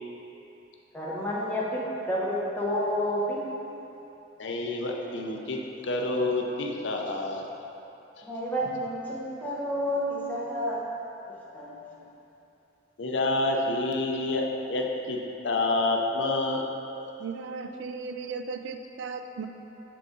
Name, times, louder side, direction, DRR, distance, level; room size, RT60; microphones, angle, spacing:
voice 1, 0.9-3.5 8.2-10.9 11.3-11.7, equal, 10° left, -6 dB, 0.8 m, -30 dB
voice 2, 4.4-7.5 13.0-15.2 15.4-16.6, left 2 dB, 75° left, 0 dB, 0.6 m, -28 dB
voice 3, 17.2-19.5, right 4 dB, 75° right, 7 dB, 0.3 m, -36 dB
6.6 x 3.7 x 3.8 m, 3.0 s
head